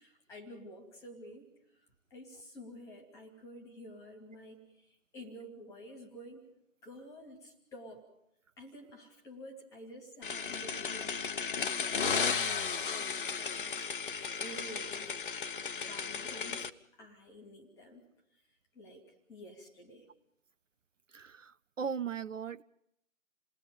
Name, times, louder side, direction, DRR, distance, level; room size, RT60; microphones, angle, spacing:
voice 1, 0.0-1.5 2.1-4.9 5.1-6.5 6.8-8.0 8.6-11.2 12.2-13.9 14.3-15.2 15.7-18.0 18.7-19.0 19.3-20.1, equal, 5° left, 2.6 m, -50 dB
sound 1, 10.2-16.7, left 6 dB, 40° left, 1.0 m, -35 dB
voice 2, 21.1-22.6, right 7 dB, 70° right, 0.8 m, -38 dB
29.0 x 20.0 x 5.4 m
figure-of-eight pair, 150°, 40 cm